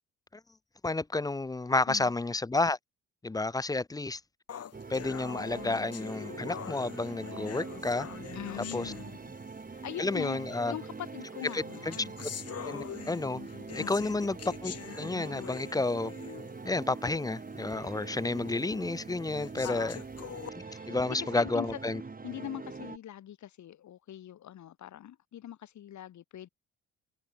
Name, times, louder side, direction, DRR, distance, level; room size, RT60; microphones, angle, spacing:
voice 1, 0.8-2.8 3.2-4.2 4.9-8.1 8.6-8.9 10.0-10.7 11.5-12.1 12.6-13.4 13.7-16.1 16.6-20.0 20.9-22.0, left 3 dB, 10° left, 0.5 m, -31 dB
sound 1, 4.5-9.6 10.5-10.6 11.4-16.6 17.1-17.2 17.7-17.8 18.5-18.6 19.3-20.5, left 8 dB, 55° left, 3.3 m, -44 dB
sound 2, 4.7-23.0, right 4 dB, 30° right, 5.8 m, -43 dB
voice 2, 8.3-9.2 9.7-12.2 13.8-14.1 19.6-20.0 20.6-21.8 22.2-26.5, left 11 dB, 70° left, 3.7 m, -42 dB
cardioid pair, 90°, 30 cm